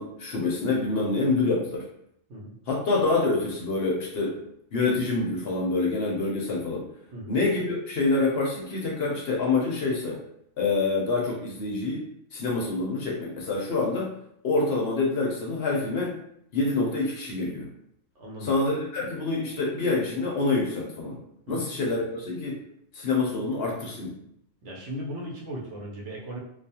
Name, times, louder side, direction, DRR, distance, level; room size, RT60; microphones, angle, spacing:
voice 1, 0.0-1.8 2.7-4.4 4.7-6.8 7.3-10.2 10.6-12.0 12.3-14.1 14.4-16.2 16.5-17.7 18.4-21.2 21.5-22.6 22.9-24.2, left 3 dB, 60° left, -2 dB, 0.7 m, -26 dB
voice 2, 18.2-18.5 21.5-21.7 24.6-26.4, equal, 70° right, -3 dB, 0.9 m, -37 dB
2.3 x 2.3 x 2.7 m, 0.72 s
omnidirectional pair, 1.3 m